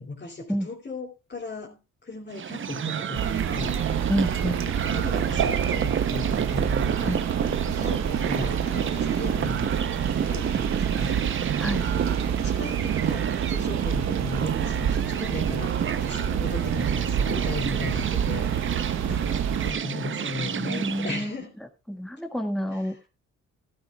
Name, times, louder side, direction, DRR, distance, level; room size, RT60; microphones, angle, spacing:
voice 1, 0.0-3.8 4.7-7.3 7.7-9.8 10.2-11.5 11.9-21.5 22.7-23.0, left 3 dB, 35° left, -2 dB, 3.0 m, -37 dB
sound 1, 2.3-21.3, right 8 dB, 40° right, 0.8 m, -30 dB
sound 2, 3.1-19.7, right 8 dB, 65° right, 1.1 m, -28 dB
voice 2, 4.1-4.6 7.0-7.2 11.6-11.9 20.4-21.3 21.9-23.1, equal, ahead, 5 dB, 1.7 m, -29 dB
16.5 x 12.0 x 2.4 m, 0.27 s
cardioid pair, 90°, 30 cm